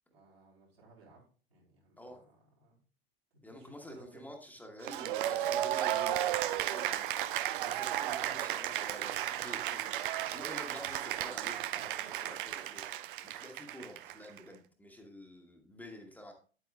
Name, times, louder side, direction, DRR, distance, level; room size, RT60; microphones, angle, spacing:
voice 1, 0.1-1.2 1.5-2.2 2.6-2.8 3.3-4.3, right 3 dB, 80° right, -4 dB, 3.7 m, -59 dB
voice 2, 3.4-7.1 7.6-12.8 13.2-16.3, left 1 dB, 5° left, 2 dB, 1.2 m, -49 dB
Cheering / Applause, 4.8-14.4, right 12 dB, 55° right, 0.5 m, -34 dB
8.9 x 8.2 x 2.4 m, 0.39 s
figure-of-eight pair, 90°, 31 cm